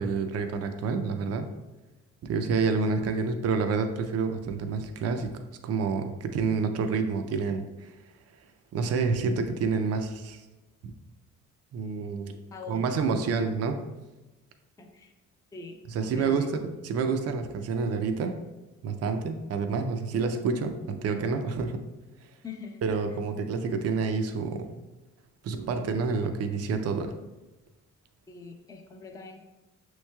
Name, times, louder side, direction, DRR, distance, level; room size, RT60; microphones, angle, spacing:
voice 1, 0.0-1.5 2.2-7.9 8.7-10.4 11.7-12.4 12.7-13.8 15.9-18.4 18.8-21.9 22.8-24.7 25.4-27.1, right 4 dB, 55° right, 7 dB, 0.5 m, -28 dB
voice 2, 12.5-12.9 14.8-15.1 15.5-16.5 22.4-22.8 28.3-29.4, left 4 dB, 10° left, 2 dB, 0.5 m, -43 dB
6.2 x 3.1 x 2.2 m, 1.1 s
cardioid pair, 90°, 30 cm